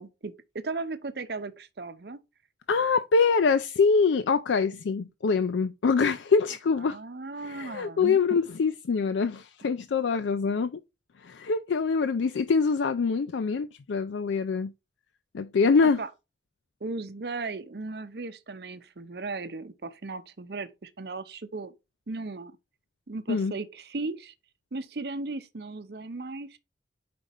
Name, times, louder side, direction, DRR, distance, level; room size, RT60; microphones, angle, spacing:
voice 1, 0.0-2.2 6.8-8.2 15.8-16.1 16.8-21.7 22.1-22.6 23.1-24.3 24.7-26.6, right 3 dB, 60° right, 0.7 m, -36 dB
voice 2, 2.7-7.0 7.4-10.8 11.2-14.7 15.3-16.0 23.3-23.5, left 5 dB, 90° left, 0.4 m, -24 dB
5.1 x 4.1 x 5.1 m
head